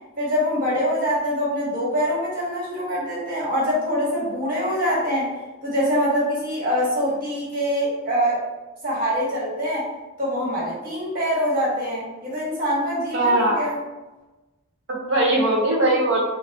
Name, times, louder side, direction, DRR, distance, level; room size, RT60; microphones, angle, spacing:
voice 1, 0.2-5.3 5.6-8.4 8.8-9.9 10.2-13.8, equal, 45° right, -6 dB, 1.2 m, -24 dB
voice 2, 13.1-13.6 14.9-16.2, right 1 dB, 70° right, -3 dB, 0.9 m, -20 dB
4.8 x 2.0 x 2.3 m, 1.1 s
head